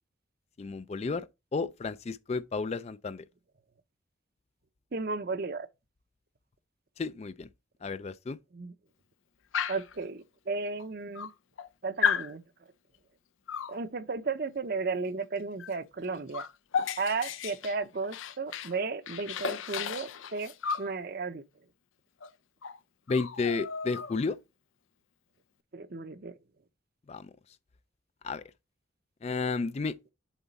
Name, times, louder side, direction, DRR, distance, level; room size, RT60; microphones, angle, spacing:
voice 1, 0.6-3.3 7.0-7.5 7.8-8.4 23.1-24.4 27.1-27.3 28.2-28.4 29.2-30.0, left 4 dB, 35° left, 0.3 m, -32 dB
voice 2, 4.9-5.7 8.5-8.7 9.7-11.3 11.8-12.4 13.7-16.5 17.0-21.4 25.7-26.3, right 4 dB, 50° right, 0.7 m, -34 dB
Dog, 9.5-9.9 10.8-10.9 11.1-11.7 12.0-12.3 13.5-13.8 15.6-15.8 16.0-18.8 19.1-20.9 22.2-22.3 22.6-22.8 23.1-24.3, left 7 dB, 90° left, 0.5 m, -33 dB
7.2 x 4.1 x 4.0 m
head